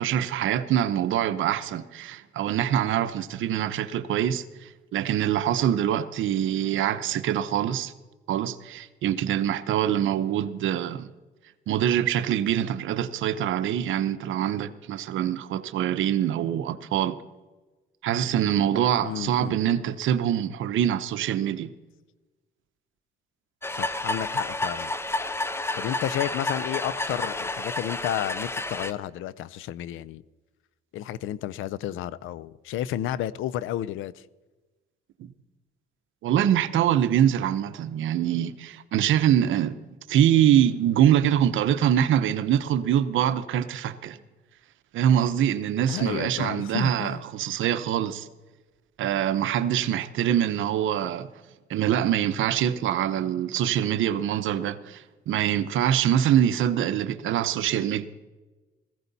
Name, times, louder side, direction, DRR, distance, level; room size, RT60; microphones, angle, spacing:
voice 1, 0.0-7.9 8.3-11.1 11.7-17.1 18.0-21.7 35.2-35.3 36.2-39.7 40.1-44.2 44.9-48.3 49.0-51.3 51.7-58.1, right 10 dB, 80° right, 0.8 m, -24 dB
voice 2, 19.0-19.6 23.7-24.9 25.7-30.2 30.9-34.1 45.9-47.2, left 12 dB, 85° left, 0.6 m, -32 dB
sound 1, 23.6-28.9, left 2 dB, 10° left, 0.8 m, -30 dB
16.0 x 15.5 x 4.1 m
cardioid pair, 90°, 20 cm